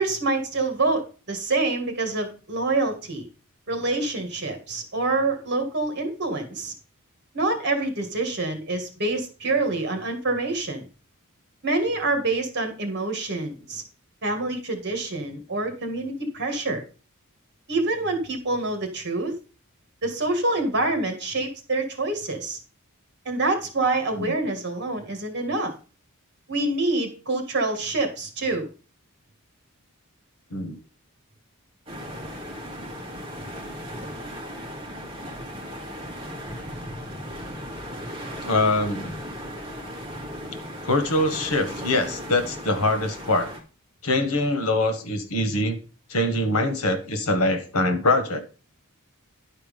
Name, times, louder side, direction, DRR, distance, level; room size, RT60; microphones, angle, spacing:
voice 1, 0.0-3.3 3.7-6.7 7.3-10.9 11.6-13.8 14.2-16.8 17.7-19.3 20.0-22.6 23.3-25.7 26.5-28.7, right 2 dB, 50° right, 6 dB, 2.1 m, -26 dB
sound 1, 31.9-43.6, equal, 25° right, 2.2 m, -36 dB
voice 2, 38.4-39.1 40.8-43.5 44.0-45.8 46.1-48.4, left 2 dB, 85° left, 9 dB, 1.6 m, -23 dB
11.0 x 4.5 x 5.4 m, 0.35 s
head